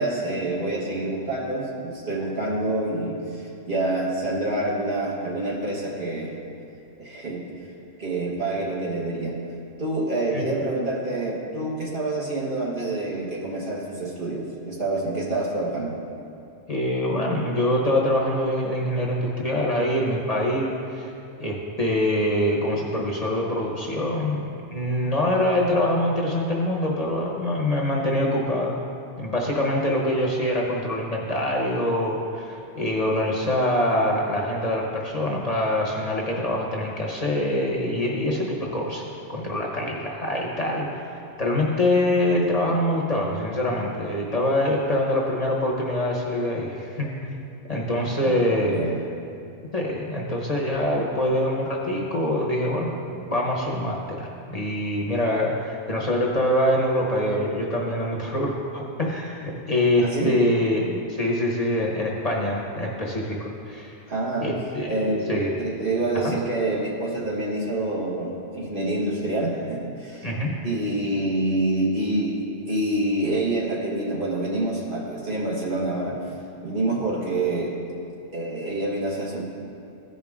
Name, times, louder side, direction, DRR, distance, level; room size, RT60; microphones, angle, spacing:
voice 1, 0.0-6.4 7.0-7.4 8.0-9.4 9.8-16.0 48.2-49.0 60.0-60.3 64.1-64.5 64.9-65.3 65.6-70.3 70.6-72.4 72.7-76.2 76.6-77.7 78.3-79.4, right 2 dB, 50° right, -4 dB, 1.6 m, -27 dB
voice 2, 16.7-21.1 21.4-28.8 29.2-39.0 39.3-41.0 41.4-47.4 47.7-48.8 49.7-64.0 64.4-65.6 66.1-66.3 70.2-70.5, left 1 dB, 35° left, -3 dB, 1.0 m, -24 dB
14.5 x 5.3 x 3.6 m, 2.7 s
omnidirectional pair, 1.2 m